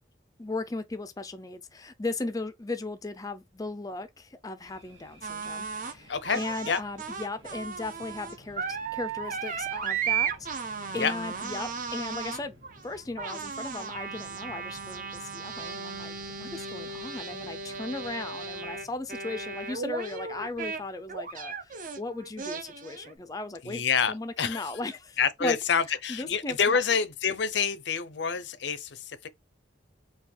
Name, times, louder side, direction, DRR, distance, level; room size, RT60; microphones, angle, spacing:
voice 1, 0.4-25.6 25.9-26.8, left 2 dB, 20° left, 0.4 m, -37 dB
sound 1, 4.6-20.9, right 1 dB, 75° right, 2.1 m, -55 dB
sound 2, 5.2-5.9 6.2-20.8 21.1-23.1, right 6 dB, 45° right, 0.8 m, -35 dB
voice 2, 6.1-6.4 6.7-6.8 11.0-11.1 23.7-24.6 25.2-28.9, left 6 dB, 65° left, 0.6 m, -27 dB
4.4 x 2.3 x 4.2 m
head